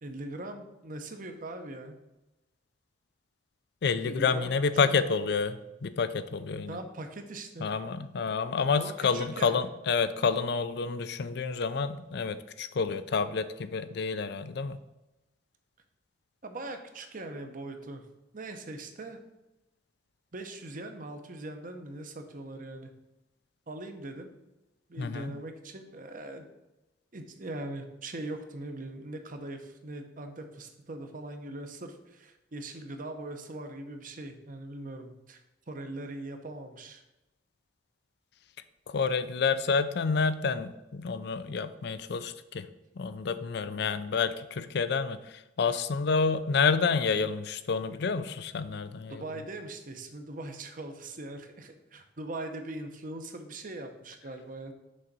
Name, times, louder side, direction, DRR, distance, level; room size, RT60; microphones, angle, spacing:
voice 1, 0.0-1.9 4.0-4.5 6.7-7.7 8.7-9.7 16.4-18.0 18.3-19.2 20.3-22.9 23.7-24.3 24.9-26.5 27.1-37.0 49.1-54.7, right 2 dB, 45° right, 6 dB, 0.8 m, -41 dB
voice 2, 3.8-6.8 7.6-14.8 25.0-25.3 38.9-42.7 43.0-45.2 45.6-49.2, left 5 dB, 60° left, 12 dB, 0.4 m, -29 dB
6.3 x 3.9 x 6.0 m, 0.99 s
head